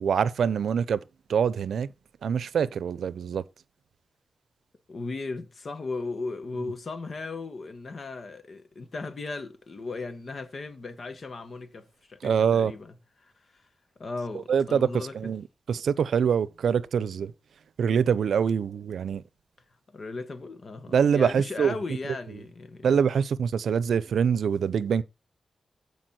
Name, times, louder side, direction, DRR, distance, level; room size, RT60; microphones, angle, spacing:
voice 1, 0.0-1.0 1.3-1.9 2.2-3.4 12.2-12.7 14.5-14.9 15.2-15.4 15.7-17.3 17.8-19.2 20.9-21.7 22.8-25.0, right 7 dB, 85° right, 0.6 m, -24 dB
voice 2, 4.9-13.7 14.0-15.2 19.9-23.0, left 3 dB, 55° left, 1.7 m, -37 dB
14.0 x 5.3 x 4.3 m
cardioid pair, 85°, 0 cm